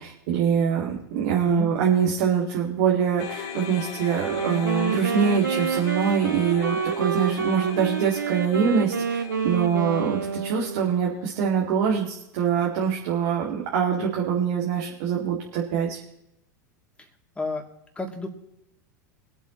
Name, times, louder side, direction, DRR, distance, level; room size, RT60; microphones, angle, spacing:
voice 1, 0.0-16.0, right 7 dB, 60° right, -2 dB, 2.3 m, -24 dB
sound 1, 3.2-11.5, left 8 dB, 50° left, 2.2 m, -39 dB
Wind instrument woodwind instrument, 4.2-11.0, right 6 dB, 85° right, 0.7 m, -28 dB
voice 2, 17.9-18.3, left 3 dB, 10° left, 2 dB, 3.0 m, -30 dB
24.5 x 8.4 x 3.1 m, 0.84 s
hypercardioid pair, 90°, 10 cm